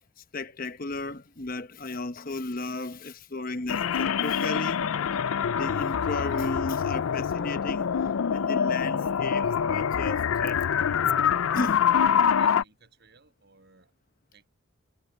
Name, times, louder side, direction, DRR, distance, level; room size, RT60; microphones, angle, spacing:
voice 1, 0.3-4.8 5.5-11.0 11.5-11.9, left 2 dB, 40° left, 0.9 m, -35 dB
sound 1, 3.7-12.6, left 7 dB, 75° left, 0.4 m, -25 dB
voice 2, 12.2-13.9 14.3-14.5, right 3 dB, 50° right, 6.5 m, -58 dB
head